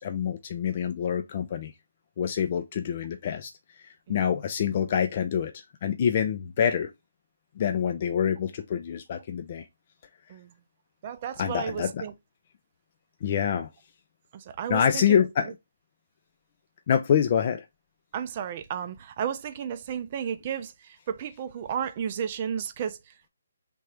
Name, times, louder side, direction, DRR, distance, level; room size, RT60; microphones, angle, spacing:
voice 1, 0.0-1.7 2.2-3.5 4.1-6.9 7.6-9.7 11.4-11.9 13.2-13.7 14.7-15.5 16.9-17.6, left 8 dB, 40° left, 0.4 m, -26 dB
voice 2, 11.0-12.1 14.3-15.2 18.1-23.3, right 8 dB, 35° right, 0.4 m, -33 dB
3.4 x 2.7 x 3.2 m
figure-of-eight pair, 145°, 0 cm